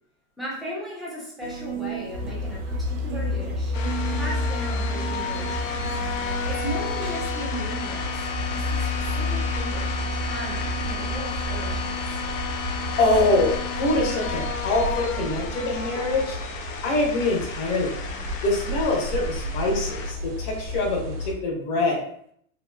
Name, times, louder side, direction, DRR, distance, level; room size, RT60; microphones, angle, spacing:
voice 1, 0.4-3.7 4.1-6.0 6.4-12.1, right 1 dB, ahead, -7 dB, 0.5 m, -37 dB
sound 1, 1.4-7.2, right 7 dB, 90° right, 0.6 m, -37 dB
sound 2, 2.1-21.3, left 1 dB, 60° right, 0.9 m, -31 dB
sound 3, 3.7-20.1, left 6 dB, 70° left, 0.6 m, -33 dB
voice 2, 12.8-16.4 16.8-17.9 18.4-22.0, left 2 dB, 45° left, -1 dB, 1.0 m, -24 dB
3.1 x 2.6 x 2.2 m, 0.65 s
supercardioid pair, 145°, 41 cm